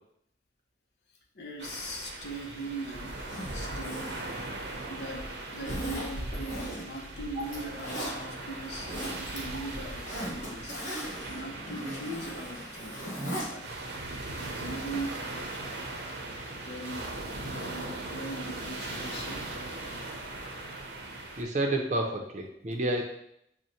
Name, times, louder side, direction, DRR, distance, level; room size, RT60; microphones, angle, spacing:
voice 1, 1.3-4.3 4.9-10.8 11.3-13.0 13.4-13.7 14.4-15.2 16.5-17.1 17.4-19.4, right 1 dB, 70° left, 1 dB, 0.6 m, -40 dB
sound 1, 1.6-21.4, right 2 dB, 85° right, 0.6 m, -39 dB
Zipper (clothing), 3.1-5.1 5.6-7.0 7.4-8.1 8.6-9.4 9.7-13.5 13.8-13.9, equal, 45° left, 1.3 m, -38 dB
voice 2, 21.4-23.0, right 1 dB, 40° right, 2 dB, 0.5 m, -29 dB
6.2 x 2.1 x 2.8 m, 0.75 s
head